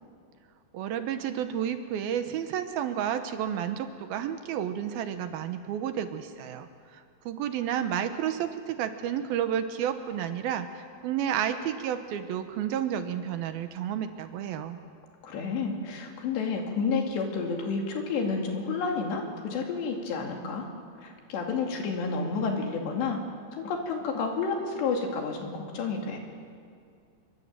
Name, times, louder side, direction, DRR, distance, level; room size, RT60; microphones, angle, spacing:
voice 1, 0.7-14.8, right 9 dB, 75° right, 8 dB, 2.6 m, -31 dB
voice 2, 15.2-20.7 21.0-23.2 23.5-26.2, left 4 dB, 90° left, 2 dB, 4.8 m, -30 dB
26.0 x 23.0 x 7.6 m, 2.3 s
omnidirectional pair, 4.8 m